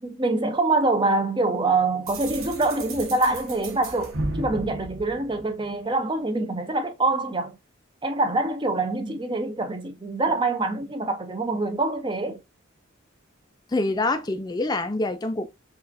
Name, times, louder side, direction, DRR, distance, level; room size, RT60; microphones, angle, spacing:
voice 1, 0.0-7.6 8.0-12.4, right 2 dB, 25° right, 0.6 m, -25 dB
sound 1, 2.1-5.9, right 2 dB, 90° right, 1.1 m, -34 dB
voice 2, 13.7-15.5, left 2 dB, 20° left, 0.4 m, -25 dB
5.4 x 2.5 x 2.5 m
head